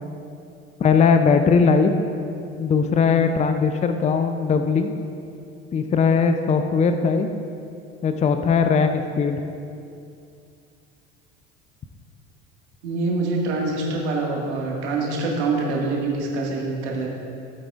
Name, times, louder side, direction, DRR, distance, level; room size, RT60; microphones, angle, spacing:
voice 1, 0.8-1.9 2.6-4.9 5.7-7.3 8.0-9.4, left 5 dB, 20° left, 7 dB, 0.5 m, -19 dB
voice 2, 12.8-17.1, right 3 dB, 70° right, -2 dB, 1.9 m, -25 dB
15.5 x 8.6 x 2.5 m, 2.5 s
figure-of-eight pair, 65°, 35 cm